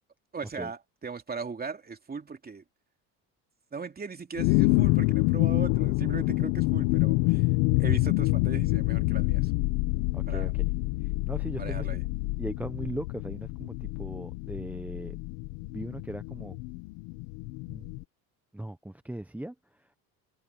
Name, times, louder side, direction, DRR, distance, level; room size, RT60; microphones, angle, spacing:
voice 1, 0.3-2.6 3.7-7.5 7.8-9.5 10.2-10.5 11.6-12.0, right 5 dB, 25° right, 2.8 m, -38 dB
sound 1, 4.4-18.0, left 22 dB, 85° left, 1.3 m, -27 dB
voice 2, 10.1-10.7 11.3-11.9 12.4-15.2 15.7-16.6 17.7-17.9 18.5-19.5, right 1 dB, 5° right, 0.9 m, -38 dB
supercardioid pair, 110°, 41 cm